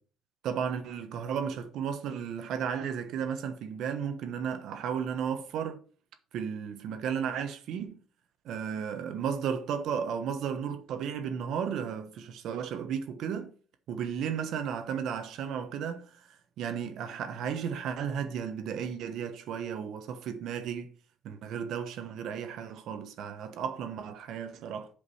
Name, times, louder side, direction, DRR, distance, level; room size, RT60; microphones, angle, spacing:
voice 1, 0.4-5.8 6.3-8.0 8.4-13.5 13.9-16.3 16.6-20.9 21.2-24.9, right 7 dB, 65° right, 1.2 m, -34 dB
8.4 x 5.2 x 5.6 m
cardioid pair, 145°, 0 cm